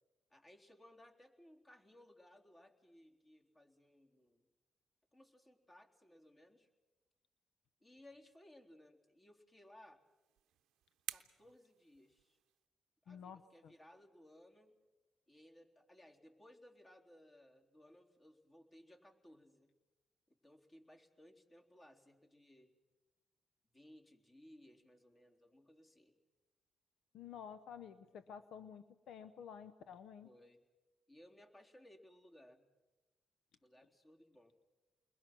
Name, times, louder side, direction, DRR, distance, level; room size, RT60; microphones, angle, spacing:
voice 1, 0.3-4.5 5.1-6.7 7.8-10.0 11.1-12.4 13.0-14.8 15.3-19.7 20.3-22.7 23.7-26.2 30.2-30.6 31.1-32.7 33.6-34.6, left 1 dB, 30° left, 2 dB, 3.8 m, -62 dB
sound 1, 10.0-12.7, right 13 dB, 85° right, 0.7 m, -52 dB
voice 2, 13.1-13.7 27.1-30.3, left 7 dB, 75° left, 12 dB, 0.8 m, -52 dB
29.5 x 22.0 x 6.1 m, 1.1 s
supercardioid pair, 60°, 0 cm